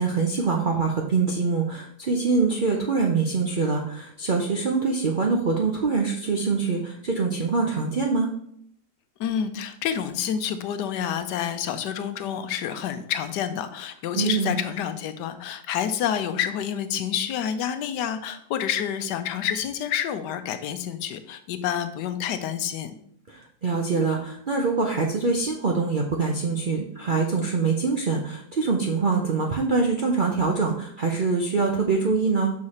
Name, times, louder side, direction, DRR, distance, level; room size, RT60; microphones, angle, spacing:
voice 1, 0.0-8.3 14.2-14.5 23.3-32.5, right 4 dB, 60° right, 1 dB, 0.5 m, -24 dB
voice 2, 9.2-22.9, left 9 dB, 85° left, 10 dB, 1.3 m, -28 dB
6.5 x 4.7 x 4.2 m, 0.67 s
omnidirectional pair, 1.8 m